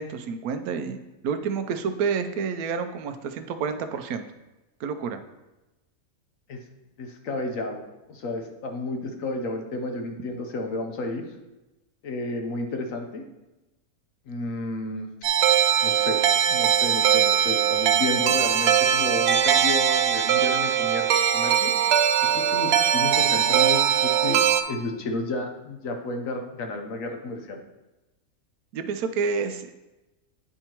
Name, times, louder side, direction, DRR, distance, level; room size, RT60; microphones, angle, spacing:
voice 1, 0.0-4.3 4.8-5.2 28.7-29.7, right 5 dB, 85° right, 8 dB, 1.1 m, -29 dB
voice 2, 7.0-7.8 8.1-11.2 12.0-13.2 14.3-15.1 15.8-16.2 16.5-21.1 21.3-22.0 22.3-24.4 24.7-27.6, left 2 dB, 70° left, 4 dB, 1.2 m, -31 dB
sound 1, 15.2-24.6, right 9 dB, 65° right, 0.7 m, -21 dB
9.8 x 4.6 x 2.9 m, 1.0 s
omnidirectional pair, 1.5 m